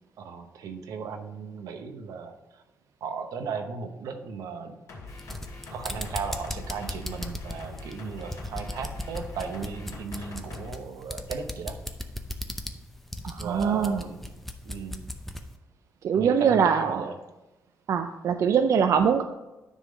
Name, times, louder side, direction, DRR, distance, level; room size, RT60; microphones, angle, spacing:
voice 1, 0.2-2.6 3.0-4.7 5.7-11.8 13.4-14.3 14.6-15.0 16.1-17.1, right 5 dB, 85° right, 7 dB, 0.9 m, -36 dB
sound 1, 4.9-10.7, left 3 dB, 55° left, 2.1 m, -43 dB
sound 2, 5.1-15.5, left 1 dB, 5° left, 0.6 m, -37 dB
voice 2, 13.2-14.0 16.0-17.0 17.9-19.2, right 7 dB, 60° right, 7 dB, 0.4 m, -23 dB
9.8 x 3.7 x 5.0 m, 1.0 s
cardioid pair, 115°, 6 cm